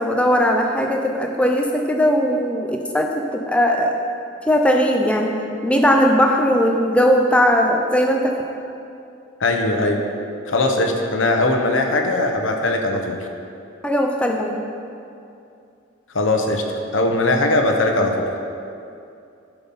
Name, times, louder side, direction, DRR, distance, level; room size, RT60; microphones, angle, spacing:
voice 1, 0.0-4.0 4.4-5.3 5.6-8.4 13.8-14.6, equal, 5° left, 2 dB, 0.6 m, -18 dB
voice 2, 9.4-10.0 10.5-13.2 16.1-16.6 16.9-18.3, left 2 dB, 75° left, 2 dB, 0.9 m, -20 dB
11.0 x 5.9 x 5.5 m, 2.6 s
head